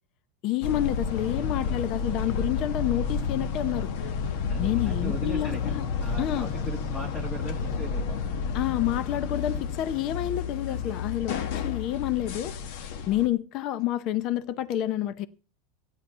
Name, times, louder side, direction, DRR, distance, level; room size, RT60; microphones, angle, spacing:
voice 1, 0.4-3.9 4.6-5.8 6.2-6.5 8.5-12.5 13.1-15.3, left 13 dB, 30° left, 0.6 m, -29 dB
sound 1, 0.6-13.3, left 6 dB, 45° left, 1.2 m, -31 dB
voice 2, 1.0-1.9 4.5-5.7 6.0-8.3 10.7-11.0, right 1 dB, 10° left, 1.3 m, -39 dB
15.5 x 9.7 x 5.5 m
supercardioid pair, 180°, 0 cm